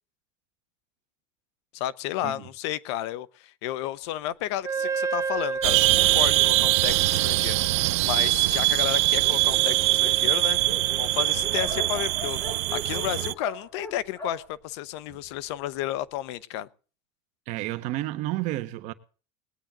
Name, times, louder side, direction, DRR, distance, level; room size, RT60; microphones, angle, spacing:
voice 1, 1.7-16.7, left 13 dB, 75° left, 0.9 m, -32 dB
Wind instrument woodwind instrument, 4.6-12.0, right 5 dB, 20° right, 0.9 m, -34 dB
Dog, 4.7-7.7 8.4-8.5 8.8-8.9 9.1-15.5, equal, 20° left, 4.7 m, -41 dB
sound 1, 5.6-13.3, right 21 dB, 80° right, 0.5 m, -23 dB
voice 2, 17.5-18.9, right 16 dB, 55° right, 1.3 m, -31 dB
20.5 x 9.0 x 3.8 m
supercardioid pair, 140°, 14 cm